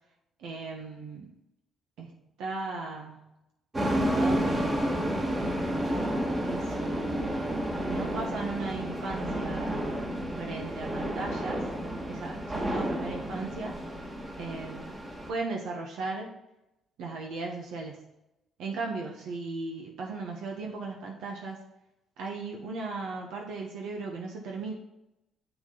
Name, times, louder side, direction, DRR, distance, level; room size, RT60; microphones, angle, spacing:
voice 1, 0.4-1.3 2.0-3.3 3.8-4.9 6.4-7.5 7.8-9.9 10.4-11.7 12.1-13.8 14.4-15.0 15.3-16.3 17.0-18.1 18.6-21.6 22.2-24.7, right 3 dB, 85° right, 0 dB, 1.3 m, -37 dB
sound 1, 3.7-15.3, equal, 25° right, 1.9 m, -31 dB
7.4 x 6.1 x 4.0 m, 0.89 s
cardioid pair, 90°, 0 cm